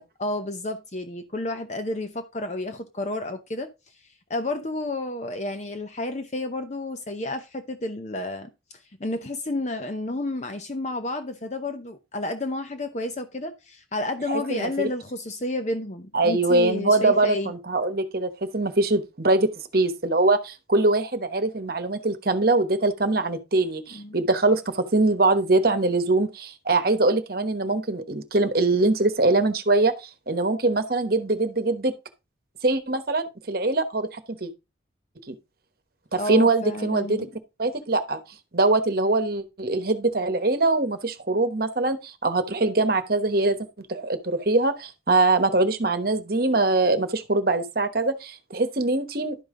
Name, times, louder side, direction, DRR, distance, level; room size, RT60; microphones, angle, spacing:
voice 1, 0.0-3.9 4.3-17.5 23.9-24.2 36.2-37.3, left 2 dB, 35° left, 0.8 m, -31 dB
voice 2, 14.3-14.7 16.1-31.9 32.6-34.5 35.3-35.4 36.1-37.2 37.6-38.2 38.5-49.4, right 2 dB, 50° right, 1.1 m, -23 dB
12.0 x 5.5 x 3.8 m
head